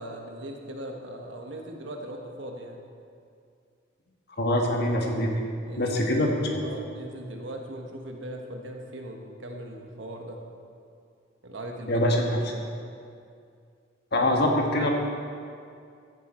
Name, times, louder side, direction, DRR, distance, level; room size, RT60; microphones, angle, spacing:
voice 1, 0.0-2.8 5.7-6.2 6.6-10.4 11.4-12.8, right 1 dB, 70° right, 2 dB, 1.3 m, -39 dB
voice 2, 4.4-5.3 5.8-6.3 11.9-12.2 14.1-14.9, left 1 dB, 60° left, 1 dB, 1.6 m, -24 dB
14.5 x 8.1 x 4.4 m, 2.4 s
head